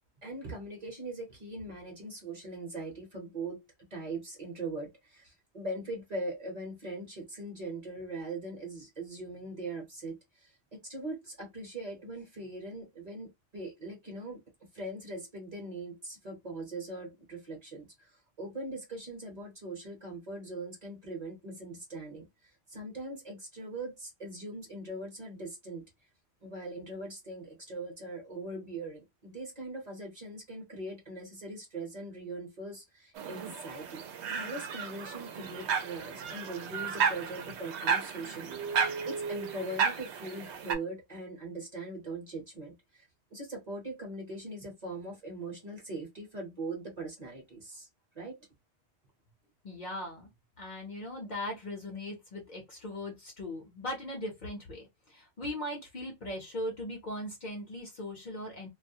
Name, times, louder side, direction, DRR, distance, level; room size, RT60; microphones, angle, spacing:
voice 1, 0.2-3.6 3.9-10.5 10.8-14.4 14.7-22.3 22.7-25.8 26.4-34.0 34.3-47.9 48.1-48.4, right 2 dB, 40° right, 0.8 m, -41 dB
sound 1, 33.2-40.7, right 6 dB, 80° right, 0.8 m, -33 dB
voice 2, 49.6-50.3 50.6-58.7, left 1 dB, 50° left, 0.7 m, -39 dB
2.3 x 2.0 x 2.6 m
omnidirectional pair, 1.1 m